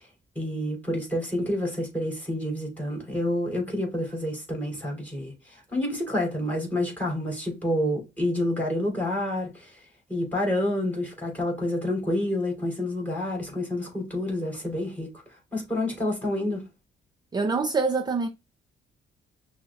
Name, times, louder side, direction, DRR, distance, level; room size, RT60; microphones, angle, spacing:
voice 1, 0.3-9.8 10.1-15.2 15.5-16.7, left 1 dB, 10° left, 2.7 m, -28 dB
voice 2, 17.3-18.3, right 4 dB, 20° right, 0.5 m, -25 dB
5.9 x 2.1 x 3.4 m
cardioid pair, 90°, 20 cm